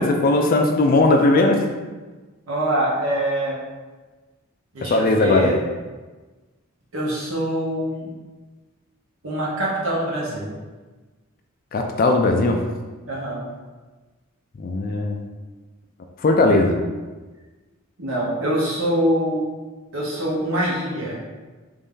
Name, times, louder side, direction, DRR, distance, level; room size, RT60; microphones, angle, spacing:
voice 1, 0.0-1.6 4.8-5.5 11.7-12.6 14.6-15.2 16.2-16.8, left 2 dB, 40° left, 3 dB, 0.3 m, -18 dB
voice 2, 2.5-3.6 4.7-5.6 6.9-8.1 9.2-10.5 13.1-13.5 18.0-19.5 19.9-21.2, right 1 dB, 70° right, -6 dB, 0.9 m, -24 dB
3.4 x 2.7 x 3.6 m, 1.3 s
head